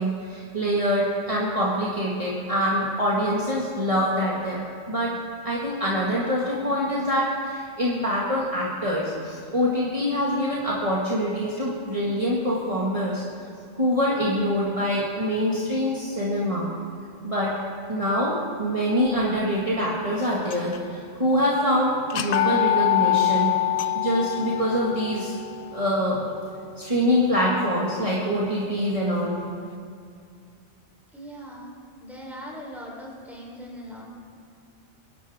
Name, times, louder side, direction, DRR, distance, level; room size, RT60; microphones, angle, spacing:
voice 1, 0.0-4.6 4.9-5.1 5.4-13.2 13.8-16.7 17.2-17.5 17.9-23.5 23.9-25.3 25.7-26.2 26.8-29.4, equal, 30° right, -6 dB, 2.0 m, -25 dB
sound 1, 20.4-21.0 21.4-21.5 22.0-27.9, left 12 dB, 55° left, 0.7 m, -26 dB
voice 2, 31.1-31.7 32.0-34.0, equal, ahead, -4 dB, 3.9 m, -40 dB
28.0 x 11.5 x 3.7 m, 2.4 s
omnidirectional pair, 1.2 m